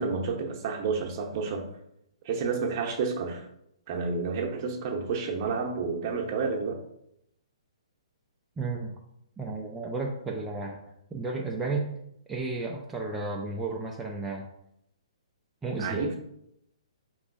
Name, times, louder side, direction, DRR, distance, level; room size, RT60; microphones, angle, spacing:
voice 1, 0.0-1.6 2.2-3.5 3.9-6.8 15.8-16.1, right 4 dB, 35° right, 2 dB, 0.8 m, -30 dB
voice 2, 8.6-8.9 9.4-10.8 11.1-12.0 12.3-14.5 15.6-16.0, right 3 dB, 10° right, -1 dB, 0.4 m, -33 dB
5.0 x 3.1 x 2.5 m, 0.78 s
figure-of-eight pair, 125°, 3 cm